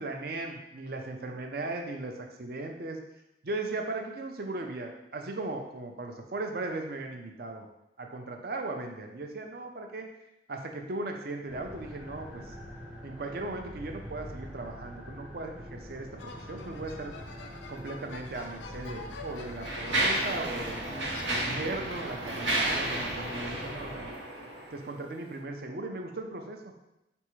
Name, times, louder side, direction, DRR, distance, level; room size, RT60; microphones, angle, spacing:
voice 1, 0.0-3.0 3.4-7.7 8.0-10.1 10.5-12.5 13.0-17.1 17.7-20.9 21.3-24.1 24.7-26.6, right 2 dB, 55° right, 3 dB, 0.5 m, -37 dB
sound 1, 11.5-24.1, equal, 5° right, 0.5 m, -45 dB
sound 2, 16.2-20.6 21.1-21.9, left 4 dB, 70° left, 0.4 m, -47 dB
Mechanisms, 18.3-18.4 19.1-24.9, right 1 dB, 90° right, 0.9 m, -32 dB
4.2 x 3.5 x 3.1 m, 0.89 s
head